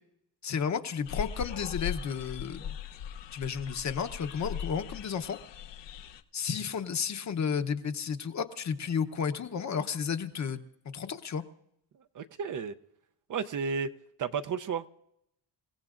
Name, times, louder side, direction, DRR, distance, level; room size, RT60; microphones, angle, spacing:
voice 1, 0.4-2.7 3.3-5.4 6.3-10.6 10.9-11.4, left 6 dB, 40° left, 8 dB, 0.9 m, -32 dB
sound 1, 1.0-6.2, left 8 dB, 80° left, 0.9 m, -39 dB
voice 2, 12.1-12.7 13.3-13.9 14.2-14.9, right 6 dB, 45° right, 9 dB, 0.7 m, -32 dB
28.0 x 17.0 x 2.5 m, 0.79 s
cardioid pair, 150°, 43 cm